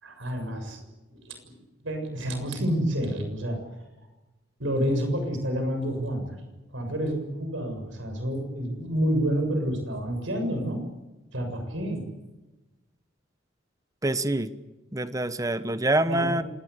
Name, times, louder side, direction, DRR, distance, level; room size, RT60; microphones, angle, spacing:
voice 1, 0.0-0.8 1.1-3.6 4.6-6.4 6.7-10.9 11.3-12.1 16.1-16.4, equal, 75° right, 6 dB, 7.0 m, -29 dB
voice 2, 14.0-14.5 14.9-16.4, right 2 dB, 20° right, 12 dB, 1.2 m, -25 dB
26.5 x 19.5 x 8.2 m, 1.1 s
head